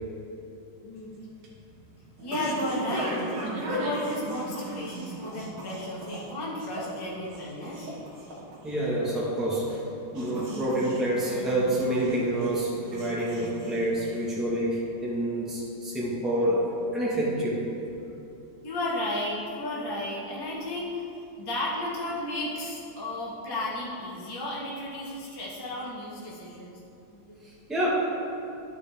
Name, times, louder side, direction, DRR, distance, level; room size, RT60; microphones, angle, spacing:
voice 1, 0.8-1.2 2.2-7.9 18.6-26.8 27.1-27.6, left 1 dB, 15° left, -6 dB, 0.8 m, -33 dB
sound 1, 1.0-14.5, right 1 dB, 65° right, 2.0 m, -37 dB
voice 2, 8.6-9.8 10.1-16.6 16.9-17.6 27.7-27.9, right 1 dB, ahead, -7 dB, 1.3 m, -27 dB
12.5 x 5.3 x 3.6 m, 2.8 s
omnidirectional pair, 2.2 m